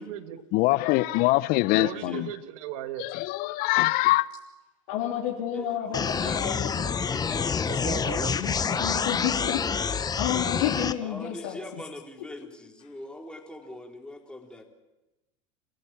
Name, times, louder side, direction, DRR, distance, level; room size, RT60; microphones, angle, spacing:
voice 1, 0.0-0.4 1.8-3.1 7.7-8.6, right 12 dB, 75° right, 1.7 m, -37 dB
voice 2, 0.5-2.3 3.0-4.3, left 19 dB, 60° left, 0.8 m, -23 dB
voice 3, 1.8-2.3 5.5-6.7 7.1-7.6 11.0-14.6, left 1 dB, 5° left, 3.9 m, -42 dB
voice 4, 4.9-6.9 8.4-9.6 10.2-11.6, left 10 dB, 75° left, 3.1 m, -30 dB
sound 1, 5.9-10.9, left 6 dB, 25° left, 0.9 m, -27 dB
28.5 x 15.0 x 7.2 m
hypercardioid pair, 90°, 17 cm